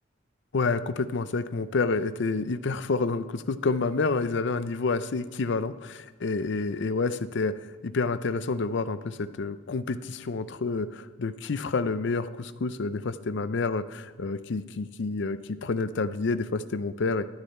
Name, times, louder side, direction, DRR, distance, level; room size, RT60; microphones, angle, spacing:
voice 1, 0.5-17.3, left 3 dB, 65° left, 13 dB, 0.5 m, -29 dB
11.5 x 9.6 x 4.3 m, 1.3 s
head